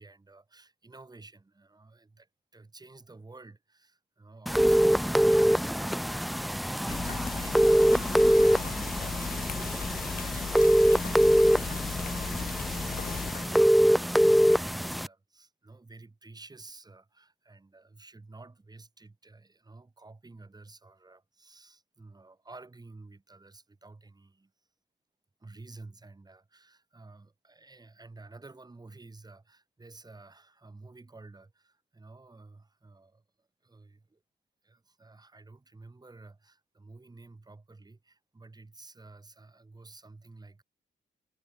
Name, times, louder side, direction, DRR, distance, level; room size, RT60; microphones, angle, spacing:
voice 1, 0.0-24.5 25.4-34.2 34.6-40.6, right 3 dB, 20° right, 4.9 m, -52 dB
sound 1, 4.5-15.1, equal, ahead, 0.6 m, -24 dB
sound 2, 6.9-13.9, left 8 dB, 50° left, 0.7 m, -37 dB
wide cardioid pair, 165°, 19 cm